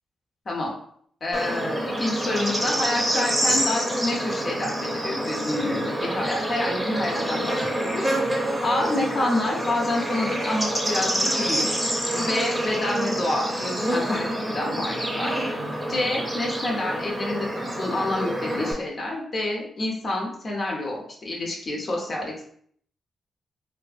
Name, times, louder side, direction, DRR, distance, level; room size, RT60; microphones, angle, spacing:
voice 1, 1.2-11.8 12.3-15.3 15.9-22.4, left 1 dB, 50° left, -2 dB, 0.7 m, -28 dB
Bird / Insect, 1.3-18.7, right 1 dB, 15° right, 0.7 m, -27 dB
2.5 x 2.4 x 2.4 m, 0.62 s
supercardioid pair, 55°, 0 cm